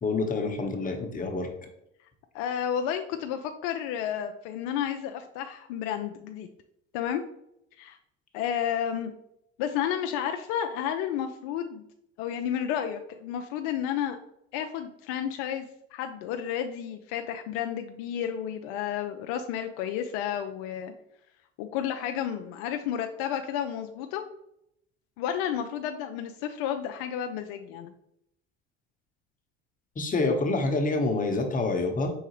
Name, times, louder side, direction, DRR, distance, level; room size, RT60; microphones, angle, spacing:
voice 1, 0.0-1.5 30.0-32.1, left 3 dB, 25° left, 4 dB, 1.0 m, -27 dB
voice 2, 2.3-6.5 6.9-7.2 7.8-8.0 8.3-9.1 9.6-11.8 12.2-14.2 14.5-20.9 21.6-24.2 25.2-27.9, left 9 dB, 70° left, 6 dB, 0.5 m, -31 dB
4.6 x 3.9 x 3.0 m, 0.79 s
hypercardioid pair, 75°, 30 cm